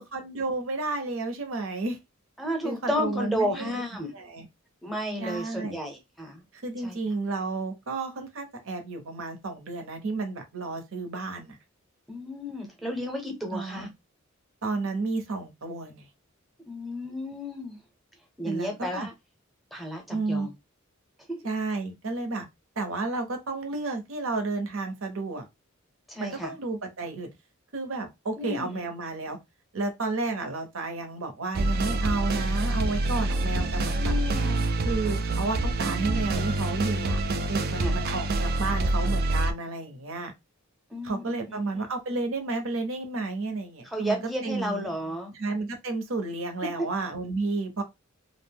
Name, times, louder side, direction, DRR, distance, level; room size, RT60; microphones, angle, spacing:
voice 1, 0.0-2.0 2.6-3.8 4.1-4.4 5.2-5.8 6.6-11.6 13.5-13.9 14.6-16.0 18.4-19.1 20.1-20.5 21.4-22.5 22.8-25.4 26.2-27.3 27.7-29.4 29.7-34.1 34.8-37.2 37.5-40.3 41.0-44.9 45.3-47.8, right 3 dB, 65° right, 0.8 m, -32 dB
voice 2, 2.4-4.1 4.8-6.4 6.8-7.0 12.1-13.9 16.7-17.8 18.4-19.1 19.7-20.5 21.3-21.4 26.1-26.6 28.4-28.9 33.2-34.7 37.7-37.9 40.9-41.9 43.8-45.3, equal, ahead, 0.7 m, -33 dB
sound 1, 31.5-39.5, right 2 dB, 45° right, 0.4 m, -26 dB
2.5 x 2.1 x 3.4 m
head